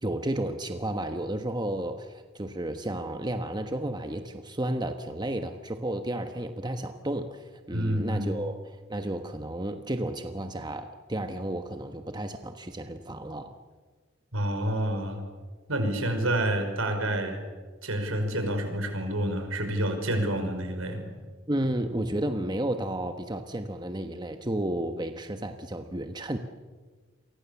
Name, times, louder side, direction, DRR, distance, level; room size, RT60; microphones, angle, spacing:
voice 1, 0.0-8.6 8.9-13.5 21.5-26.4, right 1 dB, 20° right, 7 dB, 1.2 m, -32 dB
voice 2, 7.7-8.3 14.3-15.2 15.7-17.4 17.8-21.1, right 1 dB, 80° right, 6 dB, 5.4 m, -28 dB
29.5 x 24.0 x 7.2 m, 1.4 s
head